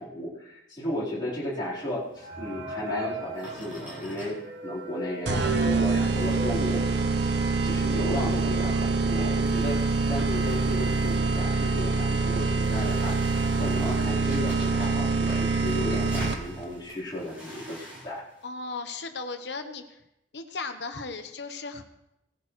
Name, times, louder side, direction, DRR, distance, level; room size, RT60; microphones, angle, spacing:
voice 1, 0.0-4.3 4.6-6.8 7.6-13.2 13.6-18.2, left 1 dB, 25° left, -10 dB, 4.0 m, -34 dB
sound 1, 1.7-5.3 5.6-18.4, equal, 10° right, 5.5 m, -47 dB
sound 2, 2.2-7.6 8.0-8.1 8.3-8.5 9.2-9.3 9.7-10.0, left 1 dB, 80° right, 2.7 m, -39 dB
sound 3, 5.3-16.6, right 3 dB, 60° right, 0.8 m, -25 dB
voice 2, 18.4-20.0 20.3-21.8, left 3 dB, 60° left, 7 dB, 1.1 m, -36 dB
18.5 x 11.0 x 3.2 m, 0.88 s
head